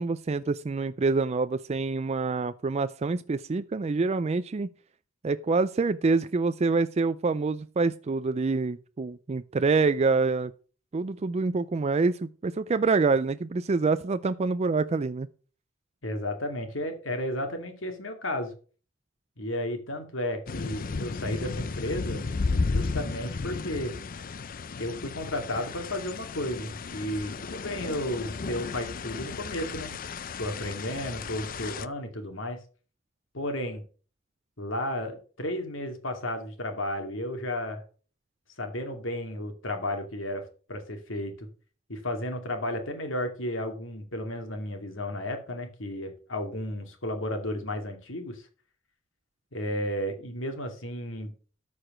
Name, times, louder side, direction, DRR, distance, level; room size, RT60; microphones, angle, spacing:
voice 1, 0.0-4.7 5.2-10.5 10.9-15.3, right 4 dB, 35° right, 0.4 m, -26 dB
voice 2, 16.0-18.5 19.4-22.2 22.7-23.9 24.8-30.0 30.4-32.6 33.3-33.8 34.6-37.8 38.6-41.5 41.9-48.4 49.5-51.3, left 1 dB, 80° left, 2.5 m, -33 dB
sound 1, 20.5-31.9, left 4 dB, 45° left, 0.5 m, -34 dB
13.0 x 4.9 x 6.2 m
head